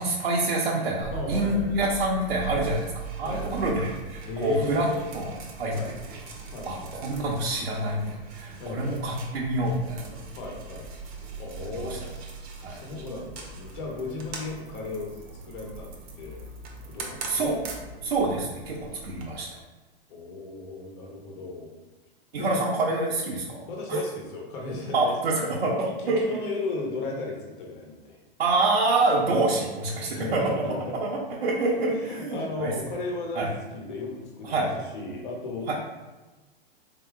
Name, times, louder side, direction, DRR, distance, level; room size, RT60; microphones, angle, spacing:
voice 1, 0.0-2.9 3.2-4.9 5.1-5.7 6.6-10.1 11.7-12.0 12.6-12.8 17.3-17.6 18.0-19.6 22.3-24.0 24.9-26.2 28.4-30.6 31.0-32.7 33.4-33.5 34.4-34.7 35.7-35.8, right 2 dB, 80° right, -6 dB, 0.8 m, -27 dB
sound 1, 1.0-19.3, right 4 dB, 30° right, 0.7 m, -40 dB
voice 2, 1.1-1.7 3.2-3.7 4.2-5.0 5.7-5.9 6.5-6.9 8.6-9.0 10.4-10.9 11.4-12.2 12.7-15.1 15.4-15.9 16.2-16.4 16.8-17.6 20.1-21.7 22.4-22.6 23.7-25.1 26.0-28.2 30.1-30.9 31.9-34.7 34.9-35.7, left 3 dB, 55° left, 0 dB, 1.1 m, -35 dB
3.5 x 2.9 x 3.5 m, 1.2 s
hypercardioid pair, 120°, 30 cm